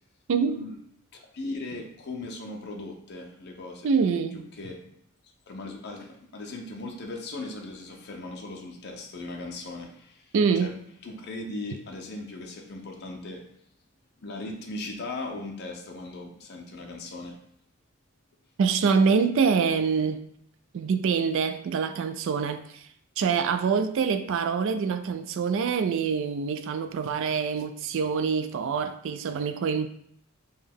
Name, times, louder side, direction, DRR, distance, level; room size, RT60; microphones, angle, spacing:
voice 1, 0.3-0.6 3.8-4.4 10.3-10.7 18.6-20.3 20.7-22.9 23.2-29.9, right 5 dB, 65° right, 0.3 m, -25 dB
voice 2, 1.1-3.9 4.5-5.0 5.5-10.7 11.0-13.5 14.2-17.4, left 2 dB, 50° left, 0.6 m, -38 dB
5.2 x 2.3 x 3.4 m
head